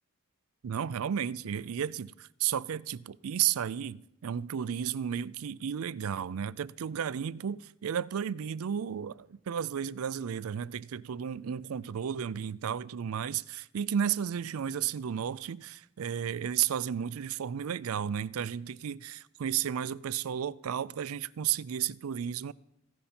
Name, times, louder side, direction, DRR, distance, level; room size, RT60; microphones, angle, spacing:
voice 1, 0.6-22.5, right 8 dB, 85° right, 0.4 m, -33 dB
15.5 x 11.0 x 4.3 m
head